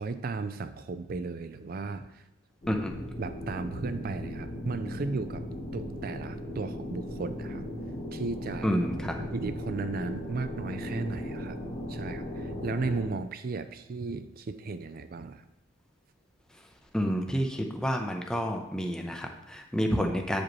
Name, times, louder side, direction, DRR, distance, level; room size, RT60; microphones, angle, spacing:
voice 1, 0.0-2.2 3.2-5.4 5.7-7.6 8.1-8.7 9.2-11.6 11.9-15.4, right 3 dB, 50° right, 11 dB, 0.4 m, -35 dB
sound 1, 2.6-13.1, left 1 dB, 35° left, 1.3 m, -37 dB
voice 2, 2.7-3.0 8.6-9.2 16.9-20.4, equal, 5° left, 3 dB, 0.6 m, -29 dB
8.5 x 5.0 x 3.1 m, 0.89 s
head